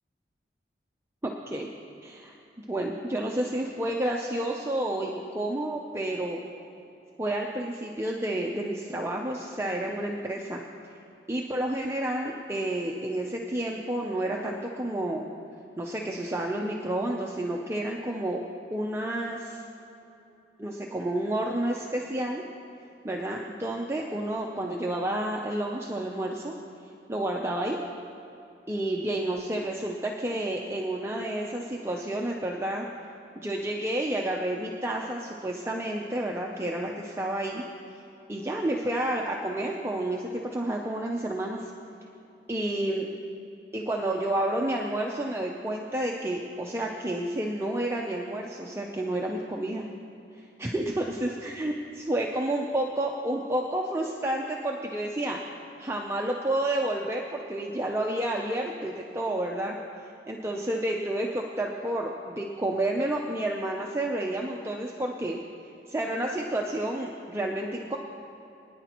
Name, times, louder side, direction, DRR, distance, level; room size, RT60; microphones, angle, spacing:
voice 1, 1.2-1.7 2.0-2.4 2.7-6.4 7.2-10.6 11.3-15.3 15.8-18.4 18.7-19.6 20.6-22.4 23.0-26.5 27.1-27.8 28.7-32.9 33.4-37.6 37.9-38.0 38.3-41.7 42.5-43.1 43.7-49.9 50.4-55.4 55.8-59.8 60.3-65.4 65.9-68.0, right 1 dB, 15° right, 0 dB, 0.6 m, -30 dB
22.5 x 10.0 x 3.0 m, 2.9 s
head